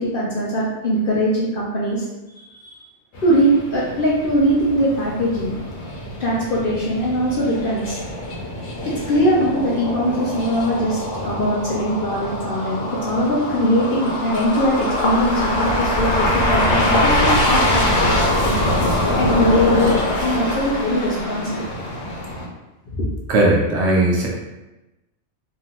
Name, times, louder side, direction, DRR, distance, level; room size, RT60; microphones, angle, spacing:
voice 1, 0.0-2.1 2.3-2.8 3.2-5.6 6.2-8.0 9.1-18.1 19.1-20.0 20.2-21.6 22.9-23.1, equal, 55° left, -5 dB, 0.6 m, -21 dB
sound 1, 3.1-22.5, left 1 dB, 80° left, 1.1 m, -23 dB
voice 2, 23.3-24.3, right 2 dB, 65° right, -2 dB, 0.9 m, -17 dB
2.8 x 2.5 x 2.8 m, 1.0 s
omnidirectional pair, 1.3 m